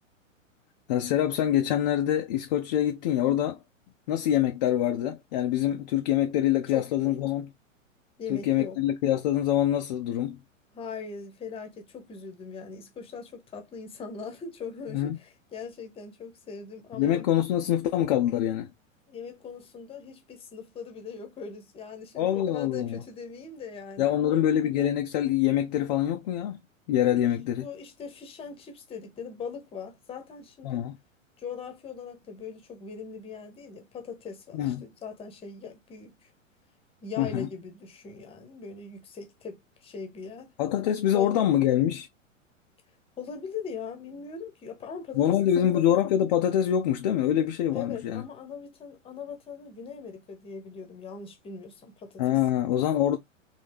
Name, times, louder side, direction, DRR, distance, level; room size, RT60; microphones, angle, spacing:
voice 1, 0.9-3.6 4.1-7.5 8.3-10.4 14.9-15.2 16.9-18.7 22.2-23.0 24.0-26.6 26.9-27.7 30.6-30.9 34.5-34.9 37.2-37.5 40.6-42.1 45.1-48.2 52.2-53.2, left 11 dB, 35° left, 0.5 m, -25 dB
voice 2, 6.7-7.2 8.2-8.8 10.7-17.2 19.1-24.5 27.6-30.9 31.4-36.3 37.0-40.5 41.1-41.4 43.2-45.8 47.7-52.6, left 5 dB, 15° left, 1.0 m, -40 dB
4.0 x 2.8 x 3.4 m
figure-of-eight pair, 105°, 40 cm